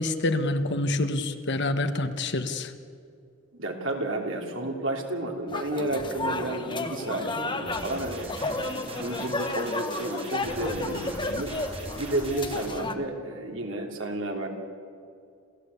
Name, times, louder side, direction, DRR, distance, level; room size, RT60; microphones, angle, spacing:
voice 1, 0.0-2.7, left 2 dB, 60° left, 9 dB, 1.4 m, -27 dB
voice 2, 3.5-11.5 12.0-14.5, right 1 dB, 65° right, 2 dB, 3.0 m, -32 dB
sound 1, 5.5-12.9, left 2 dB, 25° left, 1.3 m, -33 dB
sound 2, 7.7-12.7, right 1 dB, 30° right, 4.4 m, -40 dB
28.5 x 15.5 x 8.3 m, 2.4 s
head